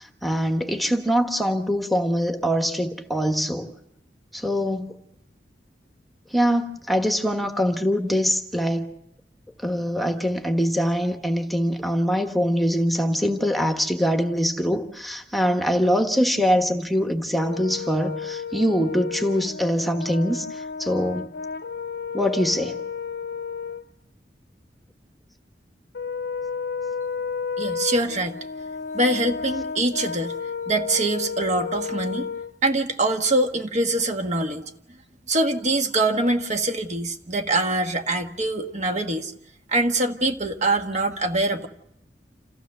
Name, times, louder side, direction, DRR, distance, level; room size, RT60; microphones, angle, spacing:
voice 1, 0.0-3.7 4.3-4.9 6.3-8.9 9.6-21.3 22.1-22.8, equal, ahead, 1.3 m, -23 dB
Brass instrument, 17.4-23.8 25.9-32.5, left 5 dB, 65° left, 0.7 m, -32 dB
voice 2, 27.6-28.4 28.9-30.4 30.7-32.3 32.6-34.7 35.3-39.3 39.7-41.7, right 2 dB, 40° right, 1.5 m, -24 dB
28.0 x 15.5 x 6.7 m
head